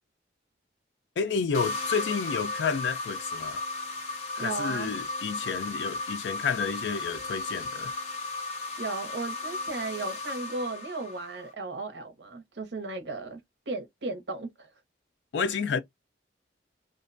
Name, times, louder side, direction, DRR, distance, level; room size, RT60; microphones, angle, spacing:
voice 1, 1.2-3.6 4.4-7.9 15.3-15.8, left 5 dB, 75° left, 0.4 m, -30 dB
sound 1, 1.5-11.5, left 3 dB, 35° left, 0.7 m, -35 dB
voice 2, 4.4-4.9 8.8-13.4 13.7-14.7, right 3 dB, 70° right, 0.7 m, -35 dB
2.4 x 2.1 x 2.5 m
head